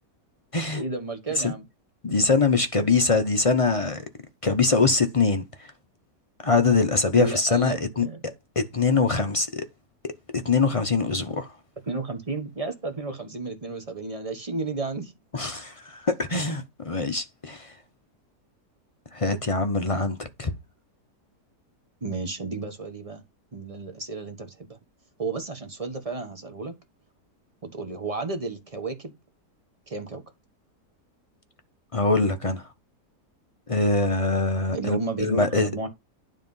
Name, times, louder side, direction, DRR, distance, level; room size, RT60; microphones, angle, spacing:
voice 1, 0.7-1.6 7.1-8.2 11.8-15.1 22.0-23.2 23.5-24.8 25.2-26.7 27.6-29.1 29.9-30.2 34.7-35.9, right 3 dB, 25° right, 1.1 m, -32 dB
voice 2, 2.0-4.0 4.4-5.4 6.4-9.7 10.0-10.1 10.4-11.5 15.3-17.7 19.1-20.5 31.9-32.6 33.7-35.7, left 3 dB, 45° left, 0.4 m, -23 dB
10.0 x 3.7 x 5.3 m
omnidirectional pair, 1.7 m